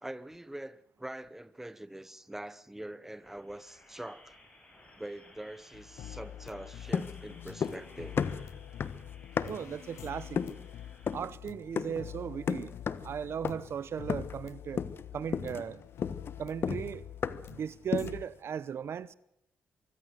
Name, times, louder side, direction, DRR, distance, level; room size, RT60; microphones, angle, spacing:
voice 1, 0.0-4.3 4.9-8.2, right 1 dB, 5° right, 1.0 m, -44 dB
sound 1, 3.2-11.1, left 2 dB, 20° left, 7.3 m, -58 dB
sound 2, 5.7-18.3, left 11 dB, 80° left, 0.8 m, -47 dB
sound 3, 6.9-7.9 8.2-9.8 10.4-10.7 11.1-11.3 11.8-12.1 12.5-13.1 13.4-13.8 14.1-14.5 14.8-15.1 15.3-17.6 17.9-18.3, left 6 dB, 50° left, 1.3 m, -33 dB
voice 2, 9.4-10.4 11.1-12.7 13.0-14.8 15.1-15.8 16.4-17.0 17.5-19.1, right 8 dB, 60° right, 0.7 m, -37 dB
23.5 x 15.5 x 8.1 m
cardioid pair, 85°, 5 cm